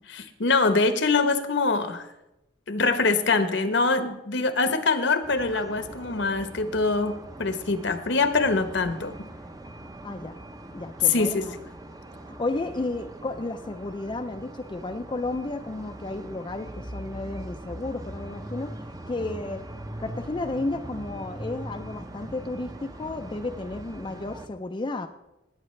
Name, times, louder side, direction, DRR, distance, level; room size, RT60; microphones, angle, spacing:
voice 1, 0.1-2.1 2.7-9.1 11.0-11.5, left 3 dB, 65° left, 9 dB, 1.0 m, -24 dB
sound 1, 5.2-24.5, right 1 dB, 20° right, 0.7 m, -41 dB
voice 2, 10.0-10.4 10.7-11.5 12.3-18.8 19.1-19.7 20.0-25.1, left 2 dB, 25° left, 6 dB, 0.4 m, -32 dB
18.5 x 8.8 x 3.2 m, 0.94 s
head